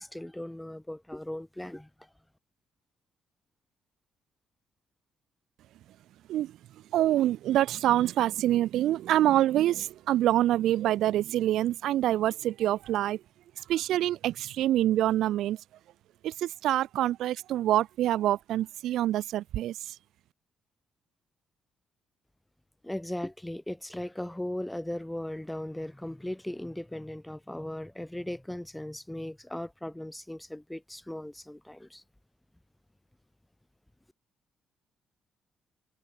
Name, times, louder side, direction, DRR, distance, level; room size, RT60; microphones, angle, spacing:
voice 1, 0.0-1.9 22.8-32.0, left 1 dB, 5° left, 1.5 m, -38 dB
voice 2, 6.9-13.2 13.7-15.6 16.2-19.8, right 13 dB, 80° right, 0.6 m, -26 dB
cardioid pair, 90°, 0 cm